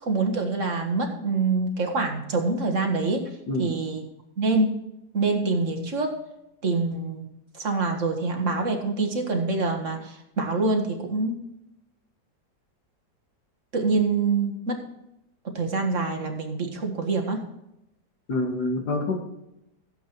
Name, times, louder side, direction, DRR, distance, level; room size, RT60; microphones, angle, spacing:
voice 1, 0.0-3.2 3.6-4.0 4.4-4.7 5.1-6.1 6.6-7.3 7.5-11.4 13.7-14.8 15.5-17.4, right 3 dB, 50° right, 4 dB, 2.0 m, -25 dB
voice 2, 18.3-19.2, left 2 dB, 75° left, 2 dB, 2.3 m, -26 dB
15.0 x 8.0 x 4.6 m, 0.85 s
omnidirectional pair, 1.7 m